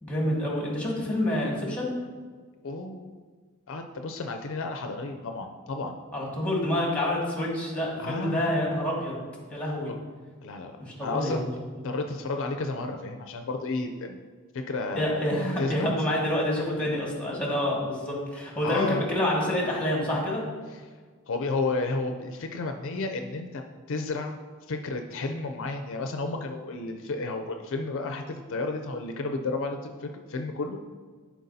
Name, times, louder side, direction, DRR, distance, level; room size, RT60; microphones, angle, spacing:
voice 1, 0.0-1.9 6.1-9.2 9.5-9.9 10.8-11.5 14.9-20.4, left 1 dB, 5° left, -3 dB, 1.7 m, -27 dB
voice 2, 2.6-3.2 3.7-6.0 8.0-8.4 9.9-10.0 10.4-11.4 11.8-14.3 14.5-15.2 15.6-15.9 18.6-19.0 20.7-20.8 21.3-23.6 23.9-24.4 24.7-30.8, left 3 dB, 65° left, 5 dB, 0.5 m, -32 dB
11.5 x 4.6 x 2.7 m, 1.5 s
head